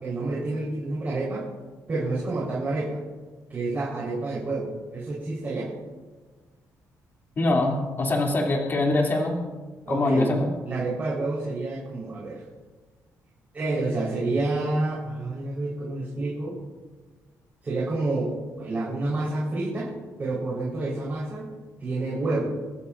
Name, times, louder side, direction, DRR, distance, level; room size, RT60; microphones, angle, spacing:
voice 1, 0.0-1.5 1.9-3.0 3.5-5.7 9.8-10.3 10.7-12.4 13.5-16.6 17.6-19.9 20.2-21.5 21.8-22.5, right 2 dB, 30° right, -7 dB, 4.2 m, -29 dB
voice 2, 7.4-9.4 9.9-10.5, left 2 dB, 35° left, 0 dB, 2.8 m, -23 dB
29.0 x 13.0 x 2.6 m, 1.3 s
cardioid pair, 125°, 6 cm